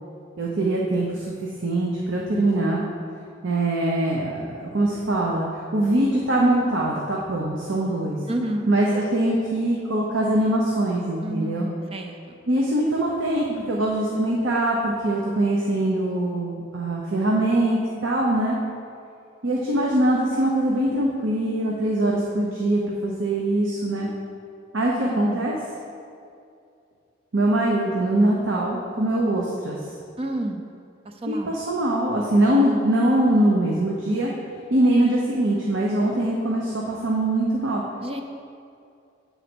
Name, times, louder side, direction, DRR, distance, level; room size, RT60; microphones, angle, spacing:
voice 1, 0.4-1.3 1.6-2.8 3.4-8.2 8.7-11.7 12.5-18.6 19.4-24.1 24.7-25.5 27.3-29.8 31.3-34.3 34.7-37.8, right 1 dB, 85° right, -2 dB, 0.8 m, -22 dB
voice 2, 8.3-8.7 11.2-12.4 25.1-25.4 30.2-30.6 31.0-31.5 38.0-38.2, right 1 dB, 30° right, 4 dB, 0.5 m, -30 dB
9.1 x 4.1 x 6.0 m, 2.5 s
head